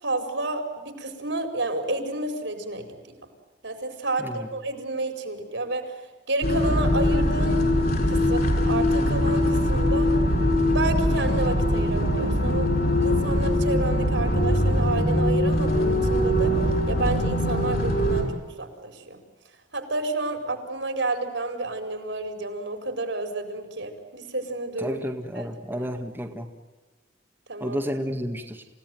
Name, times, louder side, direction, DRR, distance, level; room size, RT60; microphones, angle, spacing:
voice 1, 0.0-3.0 3.6-5.9 6.3-7.6 8.1-10.1 10.7-12.7 13.0-16.6 16.9-19.2 19.7-25.0 25.3-25.9 27.5-27.8, right 2 dB, 75° right, 7 dB, 4.9 m, -30 dB
sound 1, 6.4-18.2, left 1 dB, 55° left, 6.1 m, -22 dB
voice 2, 24.8-26.5 27.6-28.6, equal, 10° right, 2 dB, 1.9 m, -31 dB
28.5 x 17.5 x 9.4 m, 1.2 s
head